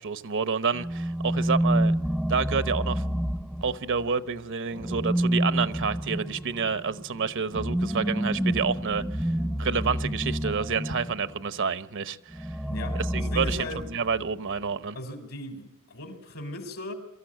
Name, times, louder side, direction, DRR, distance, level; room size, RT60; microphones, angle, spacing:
voice 1, 0.0-1.9 2.3-3.0 3.6-9.3 9.6-12.5 13.1-15.0, right 5 dB, 60° right, 0.9 m, -29 dB
sound 1, 0.7-4.1 4.7-11.3 12.3-14.3, equal, ahead, 0.7 m, -28 dB
voice 2, 12.7-13.8 14.9-16.9, left 1 dB, 70° left, 3.7 m, -38 dB
24.0 x 14.0 x 8.9 m
head